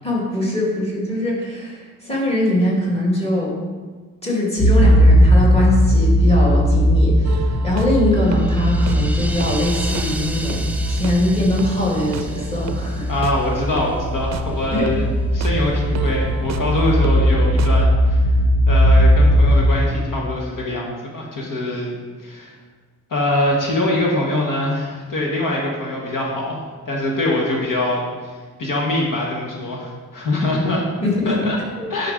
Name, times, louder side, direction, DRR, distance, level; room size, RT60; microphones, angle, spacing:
voice 1, 0.0-3.6 4.2-13.1 14.7-14.9 31.0-31.5 31.8-31.9, left 1 dB, 20° left, -4 dB, 2.5 m, -22 dB
sound 1, 4.6-20.2, equal, 60° left, 1.0 m, -18 dB
sound 2, 7.2-17.9, right 8 dB, 55° right, 0.5 m, -33 dB
sound 3, 7.9-14.1, right 2 dB, 5° right, 0.5 m, -35 dB
voice 2, 13.1-15.0 15.3-18.2 18.7-22.5 23.1-28.3 28.6-30.8 31.2-31.6 31.9-32.1, left 1 dB, 75° left, -2 dB, 1.7 m, -23 dB
10.5 x 4.6 x 5.1 m, 1.4 s
wide cardioid pair, 135°, 32 cm